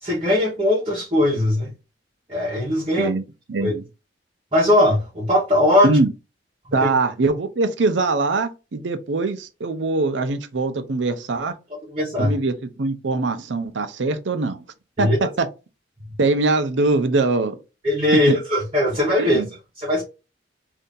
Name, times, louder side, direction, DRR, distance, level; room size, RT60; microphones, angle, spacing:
voice 1, 0.0-1.7 2.3-3.1 3.6-3.7 4.5-5.9 6.7-6.9 11.7-12.4 15.0-15.2 17.8-19.4 19.8-20.0, left 1 dB, 30° right, 1.1 m, -20 dB
voice 2, 3.5-3.8 5.8-6.1 6.7-11.5 12.2-14.6 15.0-15.5 16.2-17.5 19.2-19.5, right 3 dB, 80° right, 0.6 m, -22 dB
2.7 x 2.7 x 3.7 m
head